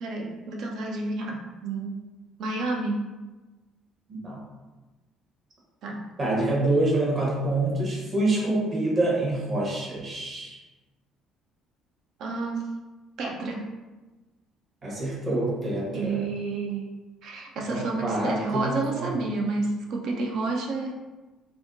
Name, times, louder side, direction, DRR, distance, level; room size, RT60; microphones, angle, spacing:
voice 1, 0.0-1.9 2.4-3.0 5.8-6.0 12.2-12.7 13.2-13.6 15.9-16.9 17.2-21.0, right 3 dB, 55° right, 0 dB, 0.5 m, -30 dB
voice 2, 4.1-4.4 6.2-10.5 14.8-16.2 17.7-19.1, right 2 dB, 40° right, -4 dB, 1.1 m, -26 dB
3.5 x 2.3 x 2.5 m, 1.2 s
figure-of-eight pair, 50°, 0 cm